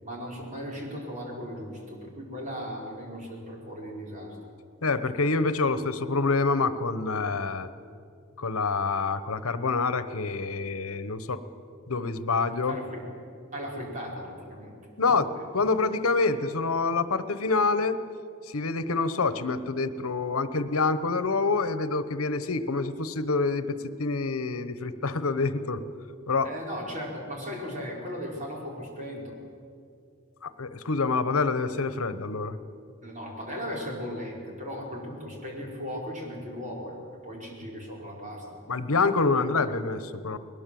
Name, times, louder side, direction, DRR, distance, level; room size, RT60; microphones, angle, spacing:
voice 1, 0.0-4.4 12.7-13.1 13.5-14.7 15.3-15.5 26.4-29.4 33.0-37.0 37.2-38.5 39.4-39.5, equal, 35° right, -2 dB, 4.8 m, -37 dB
voice 2, 4.8-7.7 8.4-11.4 11.9-12.8 15.0-18.0 18.4-25.8 26.3-26.5 30.4-32.6 38.7-40.4, left 3 dB, 85° left, 13 dB, 1.0 m, -27 dB
21.0 x 19.5 x 7.8 m, 2.5 s
head